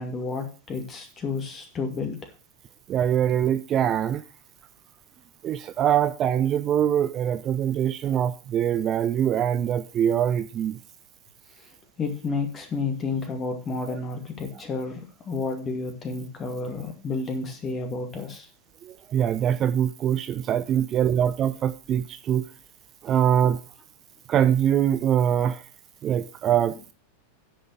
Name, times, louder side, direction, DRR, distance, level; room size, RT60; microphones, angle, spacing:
voice 1, 0.0-2.2 12.0-18.5, left 4 dB, 25° left, 2.4 m, -31 dB
voice 2, 2.9-4.2 5.4-10.8 18.8-22.4 23.0-23.6 24.3-25.6 26.0-26.7, right 9 dB, 30° right, 0.6 m, -23 dB
9.9 x 5.5 x 7.4 m
figure-of-eight pair, 90°, 0 cm